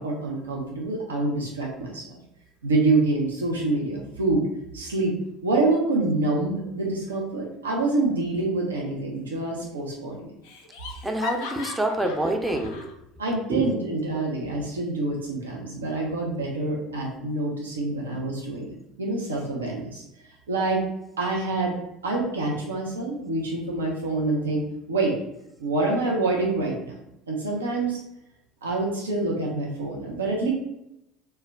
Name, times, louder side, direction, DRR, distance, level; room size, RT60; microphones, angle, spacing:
voice 1, 0.0-2.2 2.6-4.4 4.7-5.1 5.4-10.3 13.2-20.0 20.5-20.8 21.2-24.6 24.9-25.2 25.6-27.0 27.3-28.0 28.6-30.5, right 2 dB, 85° right, -2 dB, 0.4 m, -26 dB
Laughter, 9.1-9.7 9.9-10.0 10.4-12.9, left 6 dB, 75° left, 0.4 m, -38 dB
voice 2, 11.0-12.9 13.5-13.7, right 1 dB, 10° right, 4 dB, 0.4 m, -26 dB
2.2 x 2.1 x 3.3 m, 0.84 s
hypercardioid pair, 70°, 0 cm